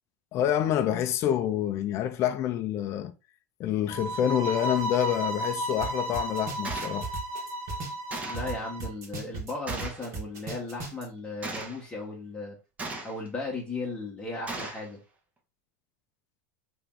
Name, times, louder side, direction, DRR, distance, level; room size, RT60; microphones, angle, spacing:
voice 1, 0.3-3.1 3.6-7.1, left 10 dB, 35° left, 0.4 m, -27 dB
sound 1, 3.9-8.9, right 1 dB, 65° right, 1.3 m, -34 dB
sound 2, 5.8-5.9 6.1-8.5 8.8-11.0, right 3 dB, 35° right, 1.5 m, -36 dB
Gunshot gunfire, 6.6-7.0 8.1-8.5 9.7-10.1 11.4-11.8 12.8-13.3 14.5-14.9, right 2 dB, 15° right, 0.8 m, -37 dB
voice 2, 8.3-12.6 13.0-15.0, left 2 dB, 15° left, 1.0 m, -36 dB
3.3 x 3.0 x 3.6 m
supercardioid pair, 130°, 9 cm